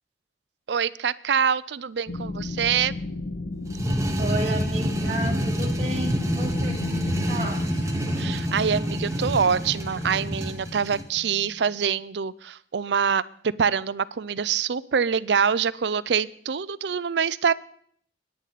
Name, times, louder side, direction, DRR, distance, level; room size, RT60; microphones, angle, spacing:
voice 1, 0.7-2.9 8.2-17.5, right 6 dB, 70° right, 18 dB, 0.5 m, -25 dB
sound 1, 2.1-7.7, left 2 dB, 60° left, 1.2 m, -33 dB
sound 2, 3.7-11.1, equal, 15° right, 1.2 m, -28 dB
voice 2, 4.2-7.6, right 1 dB, 35° right, -1 dB, 2.2 m, -32 dB
sound 3, 4.9-11.6, equal, 40° left, 1.7 m, -36 dB
23.0 x 10.0 x 4.1 m, 0.63 s
head